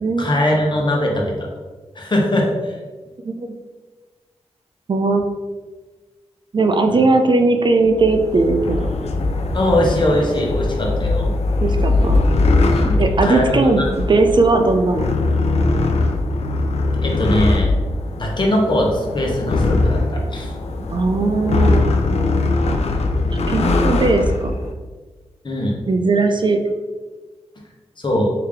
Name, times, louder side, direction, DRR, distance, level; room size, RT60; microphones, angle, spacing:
voice 1, 0.2-1.3 1.9-2.8 6.9-7.0 9.5-11.3 12.7-13.9 17.0-17.7 18.2-20.5 25.4-25.8 28.0-28.3, left 1 dB, 45° left, -1 dB, 1.0 m, -20 dB
voice 2, 4.9-5.2 6.5-8.9 11.6-12.2 13.0-13.8 14.1-15.1 20.9-21.9 23.5-24.6 25.9-26.6, right 3 dB, 45° right, 5 dB, 0.4 m, -18 dB
sound 1, 7.9-24.7, left 2 dB, 65° left, 0.4 m, -20 dB
3.3 x 2.8 x 3.5 m, 1.3 s
cardioid pair, 55°, 11 cm